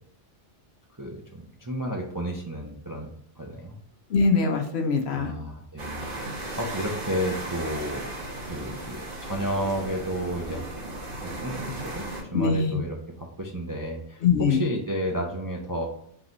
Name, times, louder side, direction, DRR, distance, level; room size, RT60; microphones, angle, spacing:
voice 1, 1.0-3.8 5.1-8.1 8.4-10.7 11.2-12.1 12.3-15.9, equal, 25° right, -1 dB, 0.5 m, -32 dB
voice 2, 4.1-5.3 12.3-12.8 14.2-14.6, left 4 dB, 65° left, 5 dB, 0.9 m, -22 dB
sound 1, 5.8-12.2, right 2 dB, 50° right, 1.3 m, -36 dB
3.9 x 3.8 x 2.9 m, 0.66 s
omnidirectional pair, 1.2 m